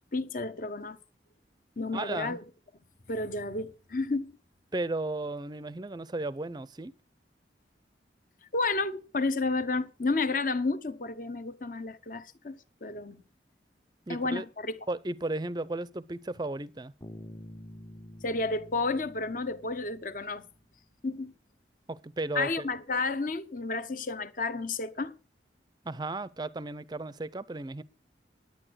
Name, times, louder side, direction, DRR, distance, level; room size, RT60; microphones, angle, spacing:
voice 1, 0.1-1.0 1.8-2.4 3.1-4.3 8.5-13.2 14.1-14.8 18.2-20.4 21.0-21.3 22.3-25.1, left 3 dB, 50° left, 1.0 m, -31 dB
voice 2, 1.9-2.4 4.7-6.9 14.1-14.5 14.9-16.9 21.9-22.7 25.8-27.8, right 2 dB, 25° right, 0.5 m, -34 dB
Bass guitar, 17.0-20.8, equal, 15° left, 0.8 m, -48 dB
11.0 x 9.4 x 6.3 m
head